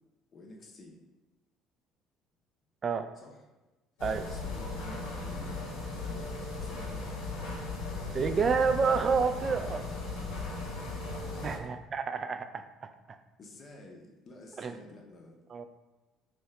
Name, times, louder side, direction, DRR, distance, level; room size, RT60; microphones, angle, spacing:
voice 1, 0.3-1.0 3.2-3.4 4.3-5.6 5.9-7.3 11.2-11.6 13.4-15.4, left 2 dB, 40° left, 0 dB, 0.6 m, -51 dB
sound 1, 4.0-11.6, left 2 dB, 75° left, 0.9 m, -37 dB
voice 2, 8.1-9.8 11.4-12.9 14.6-14.8 15.5-15.6, right 5 dB, 40° right, 8 dB, 0.3 m, -29 dB
3.0 x 2.7 x 3.2 m, 1.1 s
figure-of-eight pair, 55°, 0 cm